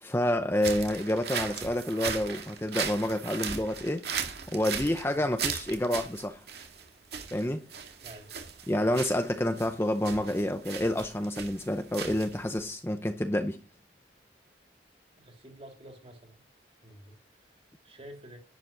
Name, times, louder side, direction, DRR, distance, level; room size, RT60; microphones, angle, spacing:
voice 1, 0.0-4.0 4.5-6.4 7.3-7.6 8.7-13.6, left 1 dB, 15° left, 0.7 m, -28 dB
sound 1, 0.6-12.6, right 6 dB, 60° right, 2.1 m, -37 dB
voice 2, 8.0-8.3 15.2-16.5 16.8-18.4, right 1 dB, 30° right, 3.3 m, -50 dB
11.5 x 10.5 x 6.2 m
head